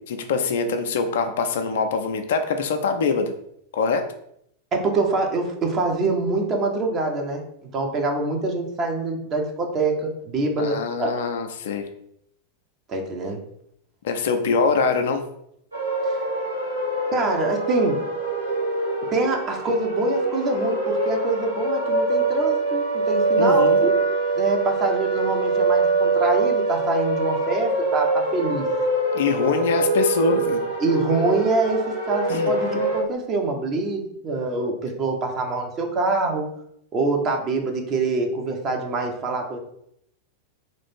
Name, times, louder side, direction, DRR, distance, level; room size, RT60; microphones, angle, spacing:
voice 1, 0.0-3.3 3.7-4.0 10.6-11.8 14.0-15.2 23.4-23.8 29.1-30.6 32.3-32.5, left 4 dB, 60° left, 6 dB, 0.4 m, -23 dB
voice 2, 4.7-11.1 12.9-13.4 17.1-18.0 19.1-24.0 24.3-28.7 30.8-36.4 36.9-39.6, right 2 dB, 30° right, 1 dB, 0.9 m, -25 dB
sound 1, 15.7-33.0, right 3 dB, 75° right, 1.3 m, -24 dB
3.1 x 2.5 x 4.4 m, 0.72 s
figure-of-eight pair, 90°, 0 cm